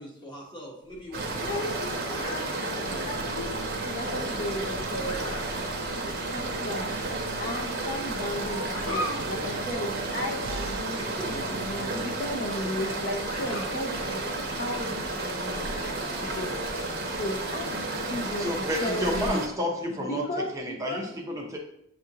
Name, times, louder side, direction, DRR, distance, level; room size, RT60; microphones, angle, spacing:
voice 1, 0.0-2.3 6.0-6.3 6.6-6.8 8.8-10.1 10.9-11.6 17.2-17.5, equal, 20° left, -1 dB, 0.9 m, -43 dB
sound 1, 0.9-19.3, equal, 85° left, 0.8 m, -43 dB
sound 2, 1.1-19.5, right 2 dB, 50° right, 0.7 m, -32 dB
sound 3, 1.1-12.7, right 5 dB, 75° right, 0.3 m, -42 dB
voice 2, 1.5-1.9 2.2-5.2 5.6-5.7 6.0-6.9 7.4-11.0 11.3-14.2 14.5-16.6 17.1-18.5 18.8-19.4 20.1-21.0, left 1 dB, 40° left, 1 dB, 0.5 m, -35 dB
voice 3, 18.4-20.2 20.5-21.6, equal, 15° right, 0 dB, 0.5 m, -30 dB
7.4 x 2.5 x 2.8 m, 0.77 s
head